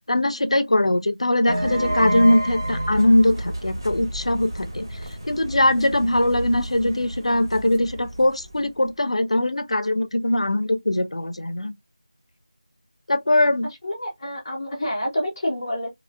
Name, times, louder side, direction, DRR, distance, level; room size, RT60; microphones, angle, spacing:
voice 1, 0.0-4.9 5.2-11.7 13.1-13.7, left 1 dB, 60° left, 0.4 m, -21 dB
sound 1, 1.5-8.9, right 1 dB, 35° right, 0.8 m, -30 dB
voice 2, 13.8-15.9, left 1 dB, 5° left, 0.4 m, -28 dB
2.9 x 2.6 x 2.4 m
figure-of-eight pair, 180°, 4 cm